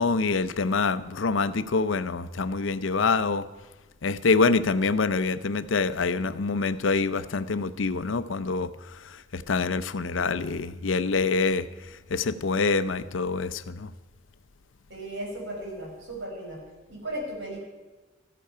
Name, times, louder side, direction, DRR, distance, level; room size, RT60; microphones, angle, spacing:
voice 1, 0.0-3.4 4.0-8.7 9.3-11.7 12.1-13.9, left 4 dB, 80° left, 14 dB, 0.6 m, -25 dB
voice 2, 14.9-16.6 16.9-17.6, right 1 dB, 70° right, -1 dB, 5.3 m, -36 dB
14.5 x 13.5 x 5.6 m, 1.2 s
head